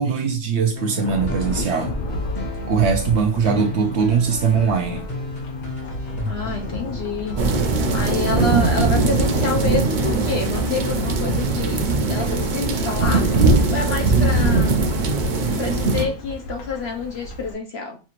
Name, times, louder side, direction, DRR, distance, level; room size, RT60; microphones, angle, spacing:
voice 1, 0.0-1.9 2.7-5.1, right 6 dB, 60° right, 0.8 m, -21 dB
sound 1, 0.7-16.1, left 2 dB, 35° left, 1.1 m, -34 dB
Thunderstorm / Rain, 1.0-17.5, left 1 dB, 80° left, 1.3 m, -34 dB
voice 2, 6.3-7.5 7.9-14.8 15.6-18.0, left 3 dB, 60° left, 0.7 m, -28 dB
sound 2, 7.4-16.0, right 3 dB, 85° right, 0.4 m, -20 dB
5.7 x 2.5 x 2.9 m
omnidirectional pair, 1.5 m